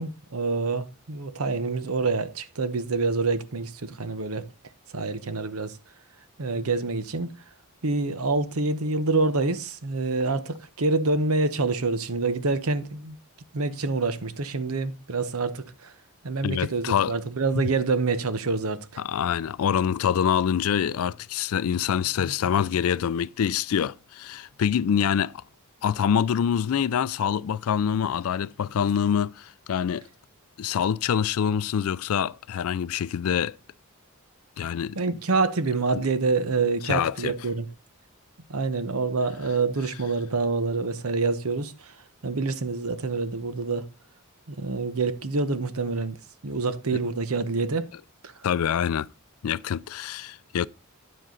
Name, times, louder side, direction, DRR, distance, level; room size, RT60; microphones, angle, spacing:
voice 1, 0.0-4.4 4.9-5.8 6.4-7.3 7.8-13.2 13.5-15.9 16.2-19.0 35.0-37.7 38.5-42.0 42.2-43.9 44.5-46.2 46.4-47.9 48.2-48.3, right 3 dB, 75° right, 0.9 m, -27 dB
voice 2, 16.4-17.2 19.0-25.3 25.8-30.0 30.6-33.6 34.6-35.0 35.9-36.0 36.8-37.3 48.4-49.1 49.4-50.7, left 8 dB, 75° left, 0.4 m, -25 dB
9.8 x 7.4 x 3.9 m
head